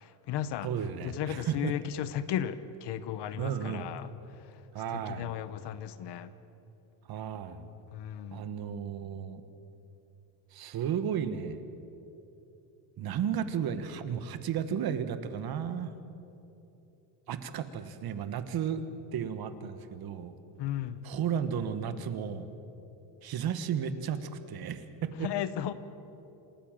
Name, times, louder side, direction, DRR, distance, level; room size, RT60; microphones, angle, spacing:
voice 1, 0.0-0.7 1.0-4.6 4.9-6.3 7.9-8.5 20.6-21.1 25.2-25.7, left 10 dB, 55° left, 14 dB, 1.1 m, -35 dB
voice 2, 0.6-1.7 3.4-3.9 4.7-5.3 7.1-7.7 8.3-9.4 10.5-11.6 13.0-15.9 17.3-20.3 21.0-22.5 23.2-25.3, right 8 dB, 45° right, 11 dB, 1.4 m, -34 dB
27.0 x 13.0 x 8.9 m, 2.9 s
cardioid pair, 140°, 49 cm